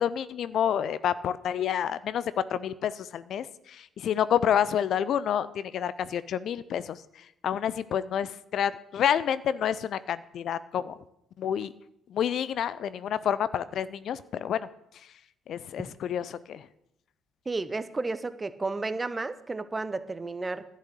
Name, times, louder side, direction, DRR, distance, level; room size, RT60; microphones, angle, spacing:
voice 1, 0.0-2.2 2.5-3.5 4.0-7.0 7.4-10.9 11.4-11.7 12.1-14.7 15.5-16.6, left 9 dB, 55° left, 16 dB, 0.5 m, -28 dB
voice 2, 17.4-20.7, right 3 dB, 25° right, 13 dB, 0.9 m, -32 dB
11.5 x 6.3 x 8.4 m, 0.80 s
hypercardioid pair, 50°, 0 cm